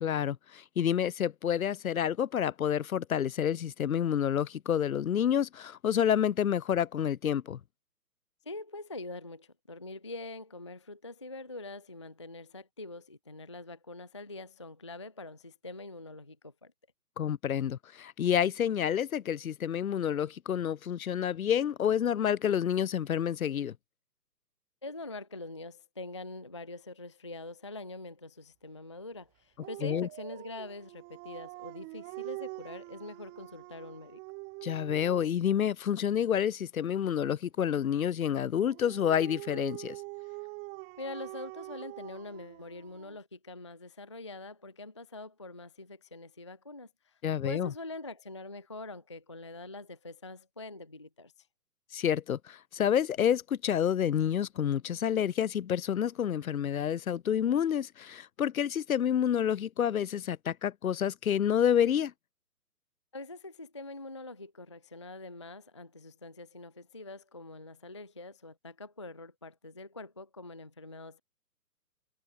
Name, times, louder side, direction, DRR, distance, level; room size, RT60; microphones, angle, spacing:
voice 1, 0.0-7.6 17.2-23.7 29.8-30.1 34.6-40.0 47.2-47.7 51.9-62.1, left 9 dB, 60° left, 1.1 m, -29 dB
voice 2, 8.5-16.7 24.8-34.2 41.0-47.2 47.4-51.5 63.1-71.2, left 2 dB, 20° left, 0.5 m, -44 dB
Dog, 29.6-35.4 38.6-43.2, right 30 dB, 20° right, 2.2 m, -45 dB
hypercardioid pair, 150°, 48 cm